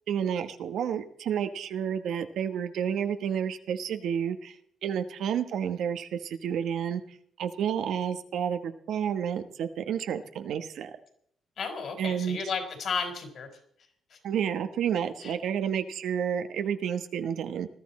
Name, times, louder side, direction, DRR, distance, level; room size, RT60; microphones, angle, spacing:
voice 1, 0.1-4.5 4.8-7.0 7.4-10.9 12.0-12.4 14.2-17.7, right 8 dB, 75° right, 9 dB, 1.1 m, -30 dB
voice 2, 11.6-13.5 14.1-14.2 15.2-15.3, left 5 dB, 60° left, 5 dB, 4.2 m, -33 dB
20.5 x 12.5 x 4.3 m, 0.67 s
cardioid pair, 90°, 0 cm